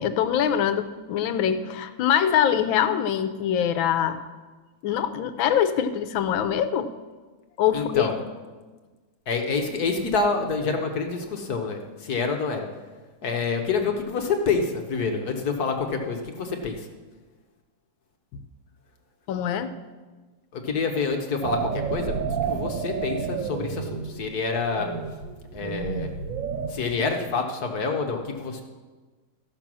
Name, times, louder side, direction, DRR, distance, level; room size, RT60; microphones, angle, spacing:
voice 1, 0.0-4.2 4.8-6.9 7.6-8.1 19.3-19.8, left 9 dB, 85° left, 10 dB, 1.4 m, -24 dB
voice 2, 7.7-8.2 9.3-12.7 13.2-16.9 20.5-24.9 25.5-26.1 26.7-28.6, left 4 dB, 60° left, 3 dB, 1.3 m, -27 dB
sound 1, 21.4-24.3 24.6-26.7, right 6 dB, 60° right, 0.9 m, -30 dB
13.5 x 6.0 x 6.1 m, 1.3 s
omnidirectional pair, 2.1 m